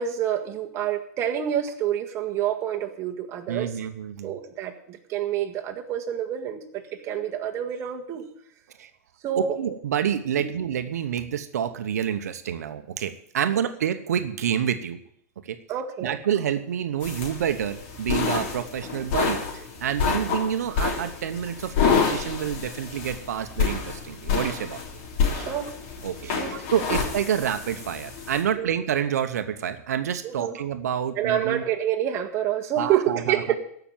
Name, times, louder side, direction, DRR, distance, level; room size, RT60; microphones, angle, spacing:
voice 1, 0.0-3.7 4.2-8.2 9.2-9.6 10.4-10.5 15.7-16.1 25.3-25.7 26.2-26.5 28.5-28.7 30.2-30.6 31.2-33.6, right 10 dB, 35° right, 3 dB, 1.8 m, -28 dB
voice 2, 3.5-4.3 8.8-8.9 9.4-15.0 15.4-15.6 16.0-24.8 26.0-31.6 32.8-33.4, right 9 dB, 85° right, 9 dB, 1.0 m, -28 dB
sound 1, 17.0-28.4, left 6 dB, 50° left, 3.3 m, -28 dB
15.0 x 6.0 x 9.0 m, 0.69 s
supercardioid pair, 140°, 8 cm